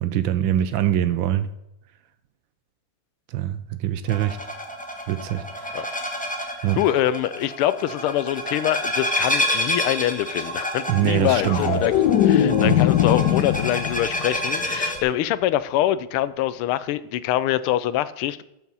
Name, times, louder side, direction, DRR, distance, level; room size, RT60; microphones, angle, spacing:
voice 1, 0.0-1.5 3.3-4.4 5.1-6.0 6.6-6.8 10.9-11.8 12.6-12.8, right 11 dB, 75° right, 12 dB, 1.3 m, -24 dB
sound 1, 4.1-15.0, equal, 5° left, 0.6 m, -29 dB
voice 2, 6.7-11.9 12.2-18.4, left 13 dB, 90° left, 16 dB, 1.5 m, -24 dB
sound 2, 11.1-14.3 14.6-15.0, left 10 dB, 70° left, 1.0 m, -21 dB
13.0 x 4.7 x 5.5 m, 0.88 s
omnidirectional pair, 2.3 m